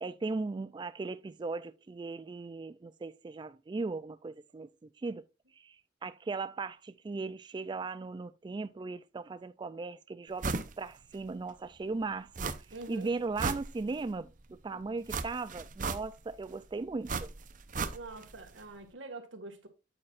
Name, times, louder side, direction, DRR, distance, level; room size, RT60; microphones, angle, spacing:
voice 1, 0.0-5.2 5.6-5.8 6.0-12.5 12.9-17.3, right 3 dB, 25° right, 0.3 m, -38 dB
sound 1, 10.4-10.7 11.1-11.2 12.4-12.9 13.2-14.1 15.1-16.4 17.1-18.3 18.6-18.7, right 4 dB, 45° right, 0.8 m, -35 dB
voice 2, 12.7-13.1 17.9-19.7, right 3 dB, 90° right, 1.9 m, -45 dB
8.7 x 8.7 x 2.5 m
head